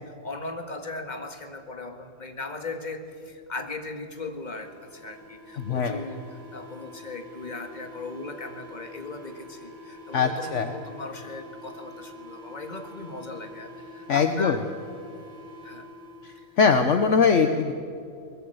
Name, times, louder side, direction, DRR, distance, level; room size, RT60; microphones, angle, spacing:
voice 1, 0.1-14.7 15.6-15.9, left 3 dB, 30° left, 6 dB, 1.9 m, -38 dB
sound 1, 4.4-16.5, left 1 dB, 60° right, 4.5 m, -45 dB
voice 2, 5.6-6.0 10.1-10.7 14.1-14.6 16.2-17.7, left 5 dB, 60° left, 7 dB, 1.3 m, -22 dB
22.0 x 20.5 x 8.0 m, 2.4 s
omnidirectional pair, 1.5 m